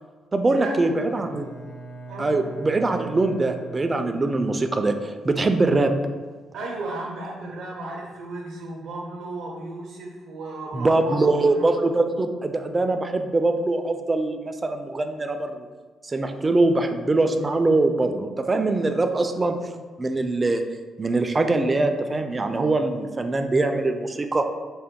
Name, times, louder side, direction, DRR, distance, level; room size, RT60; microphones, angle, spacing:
voice 1, 0.3-1.4 2.2-5.9 10.7-15.7 16.0-19.6 20.0-20.6 21.0-24.5, right 2 dB, 25° right, 7 dB, 0.4 m, -23 dB
Bowed string instrument, 1.1-4.6, right 3 dB, 55° left, 0.6 m, -41 dB
voice 2, 2.1-2.4 6.5-11.7 19.1-19.2, right 2 dB, 75° right, -4 dB, 0.6 m, -34 dB
4.5 x 2.1 x 3.6 m, 1.4 s
cardioid pair, 90°, 0 cm